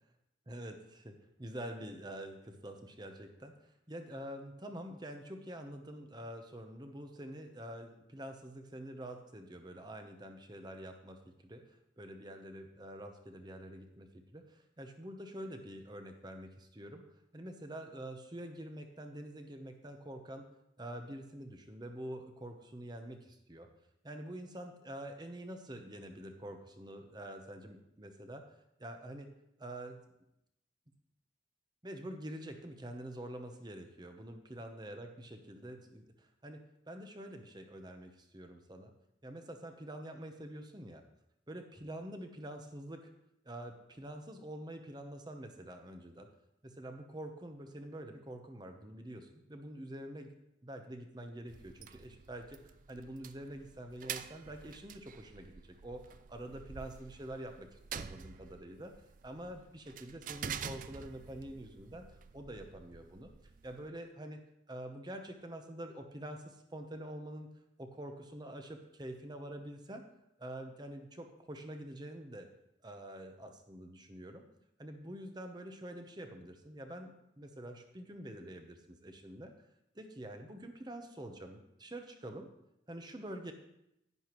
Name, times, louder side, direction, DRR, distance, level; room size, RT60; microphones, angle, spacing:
voice 1, 0.5-1.1 1.4-17.0 17.3-20.5 20.8-23.7 24.0-28.4 28.8-29.3 29.6-30.0 31.8-36.6 36.9-38.9 39.2-41.0 41.5-43.1 43.4-46.3 46.6-50.3 50.6-58.9 59.2-62.1 62.3-63.3 63.6-64.4 64.7-67.5 67.8-70.0 70.4-72.5 72.8-74.4 74.8-79.5 79.9-82.5 82.9-83.5, right 1 dB, 20° right, 5 dB, 0.9 m, -46 dB
sound 1, 51.5-63.9, right 7 dB, 45° right, 0.4 m, -48 dB
11.0 x 10.0 x 3.1 m, 0.81 s
head